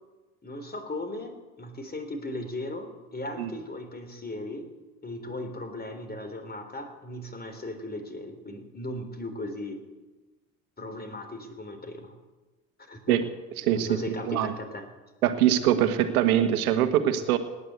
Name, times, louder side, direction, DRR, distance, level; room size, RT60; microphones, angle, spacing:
voice 1, 0.4-4.7 5.0-9.8 10.8-12.2 12.8-13.2 13.8-14.9, left 1 dB, 20° left, 7 dB, 3.6 m, -37 dB
voice 2, 13.6-14.5 15.2-17.4, right 11 dB, 80° right, 10 dB, 1.5 m, -23 dB
18.0 x 9.8 x 8.1 m, 1.2 s
hypercardioid pair, 65°, 43 cm